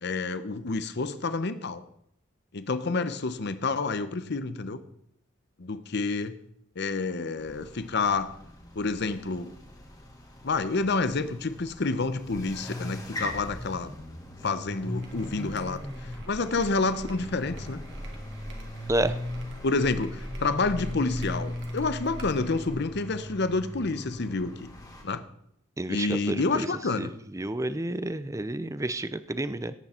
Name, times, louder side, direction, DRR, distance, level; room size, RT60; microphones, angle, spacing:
voice 1, 0.0-1.8 2.5-4.8 5.6-6.3 6.8-8.3 8.7-9.5 10.4-13.9 14.4-17.8 19.6-24.7 25.0-25.2 25.9-27.1, left 3 dB, 55° left, 12 dB, 0.8 m, -29 dB
sound 1, 7.4-25.0, left 1 dB, 20° left, 1.9 m, -39 dB
sound 2, 15.0-22.8, right 1 dB, 60° right, 2.4 m, -42 dB
voice 2, 25.8-26.7 27.0-29.7, right 1 dB, 15° right, 14 dB, 0.5 m, -30 dB
17.5 x 8.5 x 4.4 m, 0.73 s
head